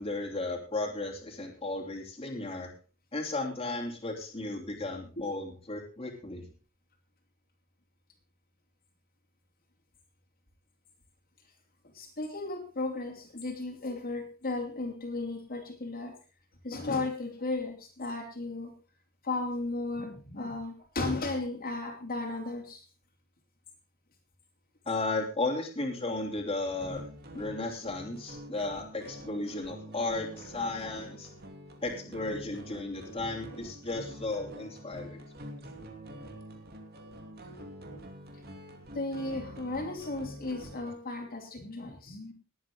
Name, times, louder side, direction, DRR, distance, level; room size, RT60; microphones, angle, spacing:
voice 1, 0.0-2.7 3.1-6.4 24.8-27.0 27.3-31.3 31.8-35.2, left 2 dB, 25° left, 0 dB, 3.0 m, -34 dB
voice 2, 11.8-16.1 16.6-18.7 19.2-22.8 38.9-42.3, left 2 dB, 45° left, 1 dB, 2.9 m, -35 dB
sound 1, 26.8-40.9, equal, 50° right, 2.7 m, -46 dB
20.0 x 8.6 x 3.7 m, 0.35 s
head